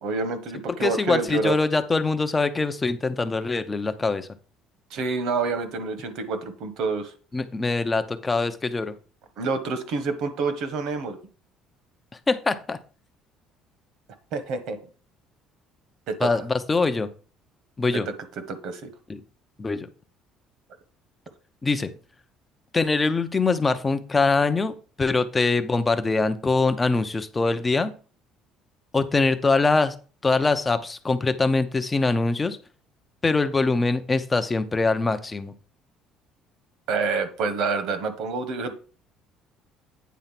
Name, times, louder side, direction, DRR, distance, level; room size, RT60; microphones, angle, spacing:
voice 1, 0.0-1.5 4.9-7.1 9.4-11.2 14.3-14.8 16.1-16.2 18.5-18.9 36.9-38.7, right 4 dB, 60° right, 9 dB, 1.4 m, -27 dB
voice 2, 0.8-4.3 7.3-8.9 12.3-12.8 16.2-17.1 17.8-18.1 19.1-19.2 19.6-19.9 21.6-21.9 22.7-27.9 28.9-30.0 30.2-32.6 33.2-35.5, left 3 dB, 15° left, 10 dB, 0.6 m, -23 dB
9.3 x 4.3 x 5.8 m, 0.38 s
cardioid pair, 165°, 0 cm